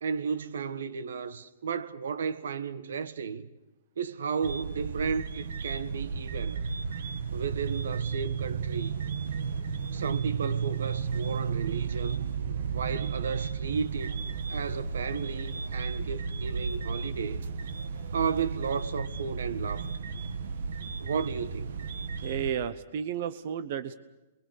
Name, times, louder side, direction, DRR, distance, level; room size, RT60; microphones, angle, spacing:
voice 1, 0.0-3.5 4.0-6.6 7.3-8.9 9.9-12.3 12.7-14.2 14.5-17.4 18.1-19.9 21.0-21.8, right 6 dB, 90° right, 1.5 m, -33 dB
sound 1, 4.4-22.5, right 6 dB, 60° right, 1.4 m, -33 dB
voice 2, 22.2-23.9, right 8 dB, 40° right, 0.9 m, -32 dB
28.5 x 22.5 x 6.5 m
hypercardioid pair, 180°, 0 cm